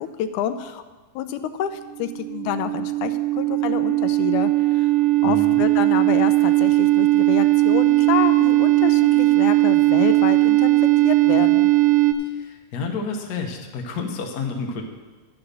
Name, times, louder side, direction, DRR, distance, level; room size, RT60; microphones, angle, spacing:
voice 1, 0.2-0.8 1.2-4.9 5.2-11.7, left 9 dB, 85° left, 10 dB, 2.1 m, -28 dB
sound 1, 1.9-12.1, right 18 dB, 80° right, 2.1 m, -18 dB
voice 2, 5.2-5.6 12.2-14.8, left 4 dB, 60° left, 2 dB, 1.0 m, -30 dB
11.5 x 5.8 x 6.7 m, 1.3 s
omnidirectional pair, 3.5 m